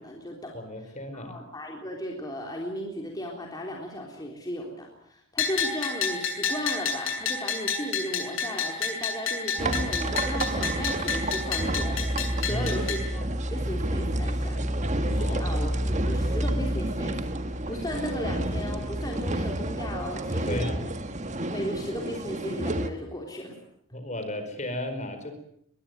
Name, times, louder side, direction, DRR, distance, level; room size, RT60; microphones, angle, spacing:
voice 1, 0.0-0.6 0.8-12.0 12.4-14.6 15.0-20.6 21.5-23.6, equal, 20° left, 0 dB, 3.6 m, -36 dB
voice 2, 0.5-1.4 12.4-12.8 15.1-15.6 20.5-20.9 23.9-25.3, left 1 dB, 35° left, 8 dB, 4.6 m, -34 dB
Bell, 5.4-13.0, left 5 dB, 70° left, 7.2 m, -30 dB
sound 1, 9.6-19.5, equal, 5° right, 1.0 m, -31 dB
sound 2, 9.6-22.9, right 2 dB, 35° right, 1.7 m, -32 dB
22.0 x 21.5 x 9.2 m, 0.70 s
head